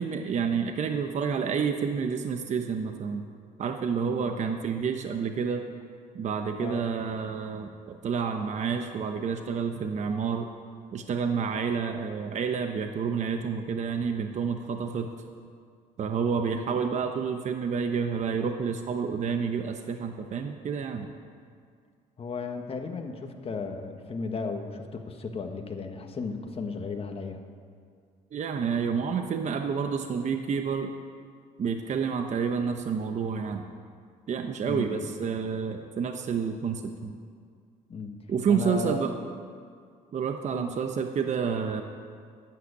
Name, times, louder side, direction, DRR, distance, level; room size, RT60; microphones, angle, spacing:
voice 1, 0.0-3.2 3.6-5.6 6.1-10.5 10.9-15.1 16.0-21.1 28.3-30.9 31.6-33.6 34.3-37.2 38.3-39.1 40.1-41.8, right 6 dB, 45° right, 5 dB, 0.9 m, -29 dB
voice 2, 4.0-4.3 6.6-6.8 16.6-16.8 22.2-27.4 34.6-35.1 37.9-38.1 38.5-39.0 40.5-40.7, left 4 dB, 35° left, 4 dB, 1.5 m, -35 dB
11.5 x 9.1 x 9.8 m, 2.1 s
cardioid pair, 110°, 17 cm